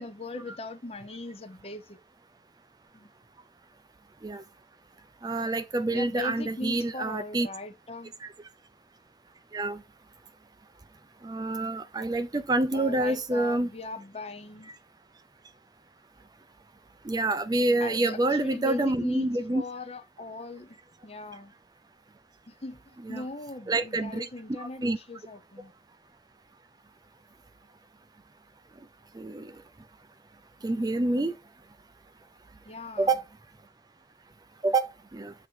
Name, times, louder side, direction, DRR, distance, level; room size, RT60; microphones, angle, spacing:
voice 1, 0.0-2.0 2.9-3.1 5.9-8.1 12.7-14.7 17.8-21.5 22.5-25.7 32.7-33.1, left 3 dB, 35° left, 0.7 m, -40 dB
voice 2, 5.2-7.5 8.2-8.3 9.5-9.8 11.2-13.7 17.0-19.6 23.0-23.2 23.7-24.3 24.6-25.0 29.1-29.5 30.6-31.3 33.0-33.2 34.6-35.3, right 2 dB, 20° right, 0.4 m, -27 dB
8.0 x 2.8 x 4.4 m
head